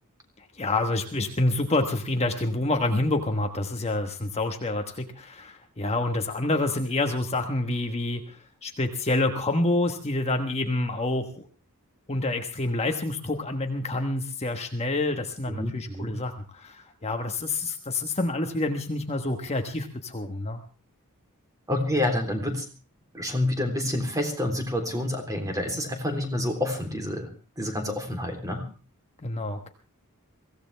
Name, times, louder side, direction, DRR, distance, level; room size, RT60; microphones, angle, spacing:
voice 1, 0.6-11.5 12.1-20.6 29.2-29.7, left 2 dB, 30° left, 4 dB, 1.3 m, -28 dB
voice 2, 15.5-16.1 21.7-22.7 23.1-27.3 27.6-28.7, left 1 dB, 15° right, 4 dB, 3.4 m, -28 dB
23.5 x 16.0 x 3.4 m, 0.34 s
head